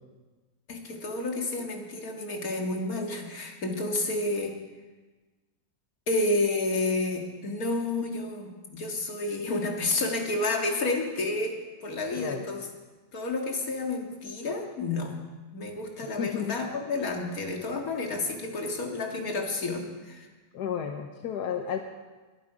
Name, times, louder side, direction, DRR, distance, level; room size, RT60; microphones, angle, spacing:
voice 1, 0.7-4.5 6.1-12.7 13.1-15.2 15.5-20.3, left 2 dB, 65° left, 1 dB, 2.4 m, -30 dB
voice 2, 16.2-16.6 20.5-21.8, left 8 dB, 90° left, 4 dB, 1.5 m, -32 dB
21.5 x 11.0 x 5.0 m, 1.3 s
omnidirectional pair, 1.7 m